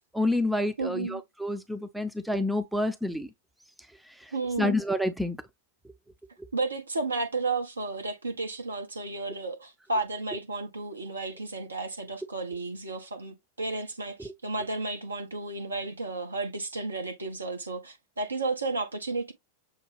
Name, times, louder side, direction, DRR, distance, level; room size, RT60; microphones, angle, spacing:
voice 1, 0.1-3.3 4.6-5.4 14.2-14.3, left 1 dB, 5° right, 0.6 m, -28 dB
voice 2, 0.8-1.2 4.3-4.7 6.5-19.3, right 3 dB, 80° right, 1.1 m, -33 dB
6.4 x 2.3 x 3.3 m
figure-of-eight pair, 90°, 0 cm